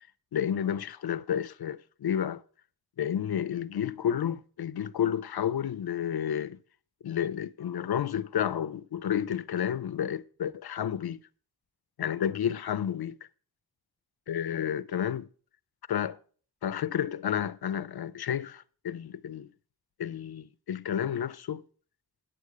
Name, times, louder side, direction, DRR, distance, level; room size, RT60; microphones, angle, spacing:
voice 1, 0.3-2.4 3.0-6.6 7.0-11.2 12.0-13.2 14.3-15.3 15.9-16.2 16.6-19.5 20.0-21.6, left 9 dB, 85° left, 0.5 m, -31 dB
9.0 x 8.3 x 4.7 m
wide cardioid pair, 50°, 37 cm